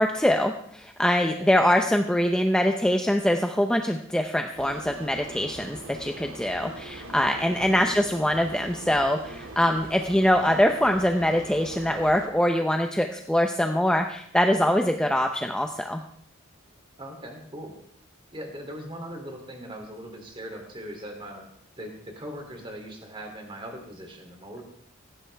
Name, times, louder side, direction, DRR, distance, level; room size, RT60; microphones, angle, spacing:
voice 1, 0.0-16.0, left 1 dB, 5° left, 5 dB, 0.6 m, -23 dB
sound 1, 4.5-12.3, right 2 dB, 75° right, 2.1 m, -41 dB
voice 2, 7.6-7.9 17.0-17.8 18.3-21.5 21.8-24.6, equal, 25° right, 3 dB, 2.8 m, -40 dB
17.5 x 15.0 x 3.4 m, 0.66 s
head